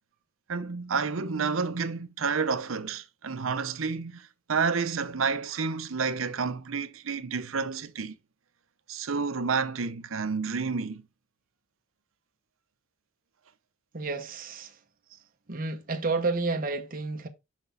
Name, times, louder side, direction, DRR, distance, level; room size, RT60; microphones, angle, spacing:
voice 1, 0.5-8.1 8.9-11.0, right 5 dB, 75° right, 0.7 m, -30 dB
voice 2, 13.9-14.8 15.5-17.3, right 3 dB, 45° right, 1.0 m, -30 dB
6.0 x 5.8 x 4.0 m
head